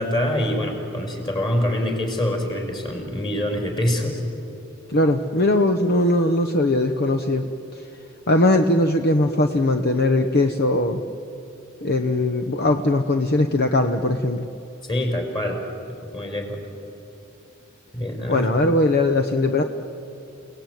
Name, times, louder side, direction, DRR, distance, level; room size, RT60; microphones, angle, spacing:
voice 1, 0.0-4.2 14.9-15.6 16.1-16.6 17.9-18.5, left 1 dB, 25° left, 3 dB, 4.8 m, -25 dB
voice 2, 4.9-7.5 8.3-11.0 11.8-14.5 18.3-19.6, left 1 dB, 50° left, 7 dB, 1.0 m, -20 dB
29.5 x 18.5 x 9.3 m, 3.0 s
head